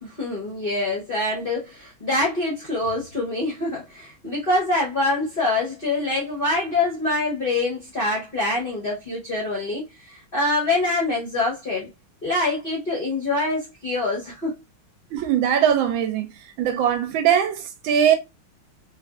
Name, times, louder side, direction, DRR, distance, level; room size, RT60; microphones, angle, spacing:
voice 1, 0.0-11.9 12.2-14.6, left 2 dB, 55° left, 0.6 m, -25 dB
voice 2, 15.1-16.3 16.6-18.2, right 9 dB, 75° right, 1.2 m, -20 dB
3.3 x 2.4 x 2.3 m
omnidirectional pair, 2.3 m